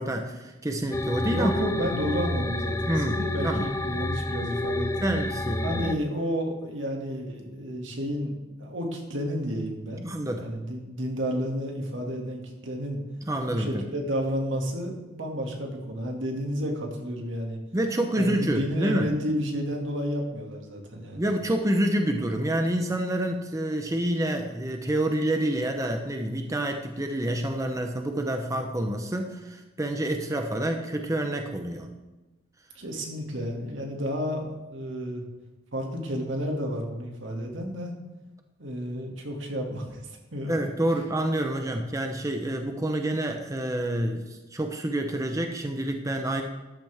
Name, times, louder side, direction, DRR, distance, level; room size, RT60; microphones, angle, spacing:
voice 1, 0.0-1.5 2.9-3.2 3.4-3.7 5.0-5.9 10.0-10.4 13.3-13.8 17.7-19.1 21.2-31.9 40.5-46.4, right 1 dB, 15° right, 4 dB, 0.8 m, -28 dB
sound 1, 0.9-5.9, left 1 dB, 15° left, 0.6 m, -29 dB
voice 2, 1.3-5.2 5.6-13.0 13.5-17.6 18.2-21.2 32.8-35.2 35.7-37.9 38.6-40.0 40.3-40.7, equal, 80° right, 1 dB, 2.2 m, -31 dB
13.5 x 10.5 x 3.5 m, 1.1 s
head